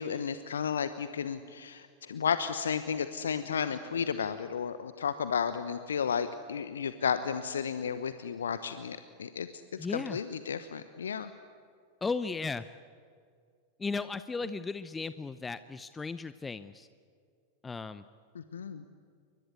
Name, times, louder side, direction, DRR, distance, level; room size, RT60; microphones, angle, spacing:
voice 1, 0.0-9.5 9.9-11.3 18.3-18.8, left 7 dB, 65° left, 12 dB, 1.0 m, -33 dB
voice 2, 9.8-10.2 12.0-12.7 13.8-16.9 17.6-18.0, left 4 dB, 15° left, 14 dB, 0.7 m, -35 dB
29.0 x 23.5 x 8.2 m, 2.2 s
figure-of-eight pair, 90°, 0 cm